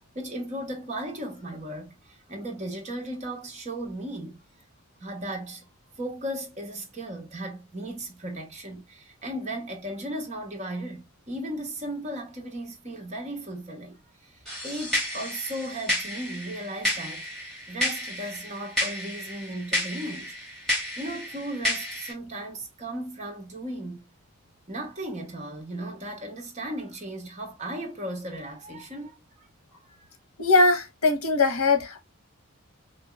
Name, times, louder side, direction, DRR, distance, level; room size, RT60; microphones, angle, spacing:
voice 1, 0.1-4.4 5.0-5.7 6.0-17.3 17.7-20.3 20.9-24.1 24.7-29.5 29.8-30.1, right 1 dB, 30° right, 0.9 m, -36 dB
sound 1, 14.5-22.1, left 1 dB, 5° left, 1.5 m, -31 dB
voice 2, 30.4-32.0, left 3 dB, 85° left, 0.9 m, -21 dB
3.8 x 2.7 x 2.2 m
head